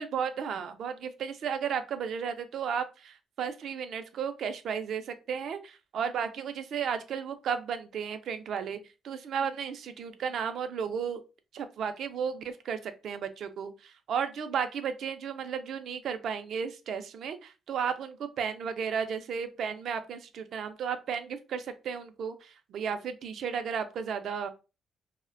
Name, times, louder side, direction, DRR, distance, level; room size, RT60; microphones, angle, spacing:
voice 1, 0.0-8.8 9.0-11.2 11.5-24.5, right 7 dB, 70° right, 9 dB, 0.4 m, -34 dB
2.4 x 2.1 x 2.4 m, 0.30 s
cardioid pair, 90°, 0 cm